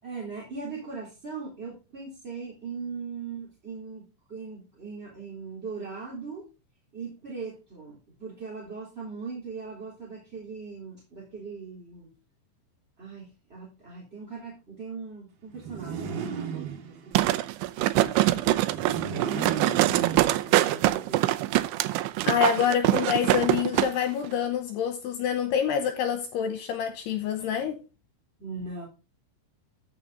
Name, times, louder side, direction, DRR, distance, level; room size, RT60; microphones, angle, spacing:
voice 1, 0.0-4.0 4.3-6.5 6.9-12.1 13.0-17.1 17.5-19.5 20.4-21.5 28.4-28.8, right 4 dB, 15° right, 3.1 m, -40 dB
sound 1, 15.5-17.3 18.6-20.8, right 7 dB, 60° right, 3.2 m, -34 dB
sound 2, 17.2-23.9 24.2-24.3, right 16 dB, 85° right, 3.1 m, -24 dB
voice 2, 22.2-27.8, left 8 dB, 75° left, 2.7 m, -27 dB
14.0 x 6.5 x 3.9 m
omnidirectional pair, 5.3 m